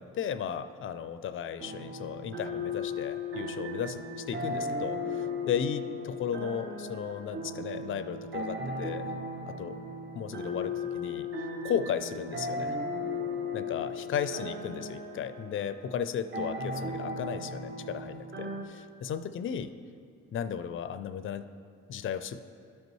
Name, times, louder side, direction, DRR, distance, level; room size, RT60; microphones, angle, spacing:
voice 1, 0.0-9.1 9.5-9.8 10.2-11.3 11.6-12.7 13.5-19.7 20.3-21.4 21.9-22.4, left 8 dB, 45° left, 11 dB, 0.4 m, -35 dB
sound 1, 1.6-18.6, left 2 dB, 45° right, 0.7 m, -36 dB
13.0 x 5.3 x 3.1 m, 2.4 s
cardioid pair, 90°, 30 cm